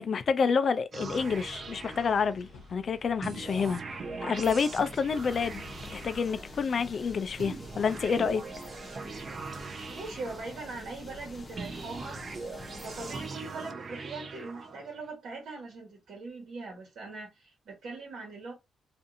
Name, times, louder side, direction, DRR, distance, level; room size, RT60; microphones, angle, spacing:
voice 1, 0.0-5.6 5.9-8.4, left 6 dB, 45° left, 0.3 m, -28 dB
sound 1, 0.9-2.7 3.2-6.8 7.4-11.0 11.6-15.1, right 4 dB, 40° right, 0.5 m, -41 dB
sound 2, 1.0-6.6, left 3 dB, 85° left, 0.8 m, -51 dB
sound 3, 5.0-13.3, left 2 dB, 25° left, 0.8 m, -47 dB
voice 2, 9.9-12.2 12.8-18.5, right 3 dB, 75° right, 1.2 m, -41 dB
2.6 x 2.5 x 2.6 m
cardioid pair, 120°, 0 cm